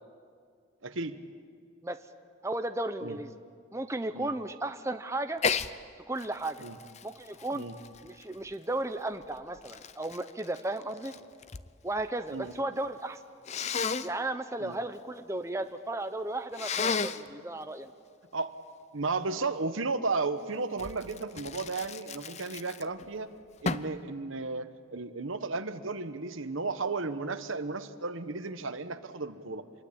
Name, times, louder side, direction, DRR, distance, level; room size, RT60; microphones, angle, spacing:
voice 1, 0.8-1.2 3.0-3.2 4.1-4.3 6.6-6.8 7.5-7.7 12.3-12.5 14.6-14.7 18.3-18.6 18.9-23.3 23.6-29.7, right 3 dB, 75° right, 11 dB, 1.2 m, -34 dB
voice 2, 2.4-3.3 3.7-5.4 6.1-6.6 7.0-7.6 8.0-11.1 11.8-13.2 14.0-17.9, right 2 dB, 15° right, 8 dB, 0.7 m, -34 dB
Sneeze, 5.4-5.7 6.2-8.5 9.2-11.7 12.0-12.6 13.5-14.1 16.5-17.3 20.8-23.1 23.6-24.0, left 5 dB, 35° left, 0.6 m, -33 dB
27.0 x 22.0 x 8.8 m, 2.2 s
head